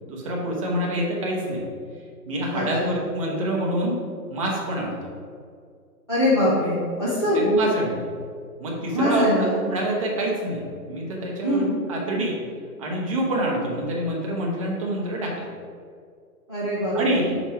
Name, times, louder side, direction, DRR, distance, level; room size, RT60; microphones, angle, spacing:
voice 1, 0.0-1.7 2.3-4.0 4.3-5.0 7.3-8.1 8.6-12.4 12.8-15.5 16.9-17.4, right 1 dB, 20° right, -2 dB, 0.8 m, -26 dB
voice 2, 2.5-2.9 6.1-7.4 8.9-9.6 11.4-11.7 16.5-17.2, left 1 dB, 20° left, -11 dB, 0.5 m, -23 dB
5.9 x 3.2 x 5.5 m, 2.1 s
hypercardioid pair, 155°, 48 cm